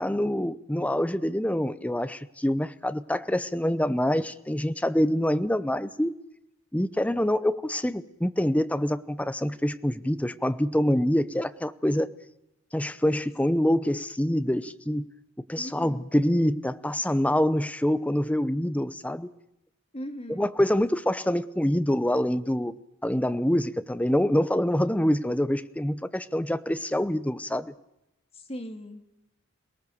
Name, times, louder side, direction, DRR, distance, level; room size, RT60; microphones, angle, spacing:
voice 1, 0.0-6.1 6.7-12.1 12.7-15.1 15.5-19.3 20.3-22.7 23.0-27.7, left 1 dB, 5° left, 0.7 m, -26 dB
voice 2, 15.6-16.0 19.9-20.4 28.5-29.0, equal, 30° left, 2.3 m, -38 dB
27.5 x 18.5 x 7.0 m
head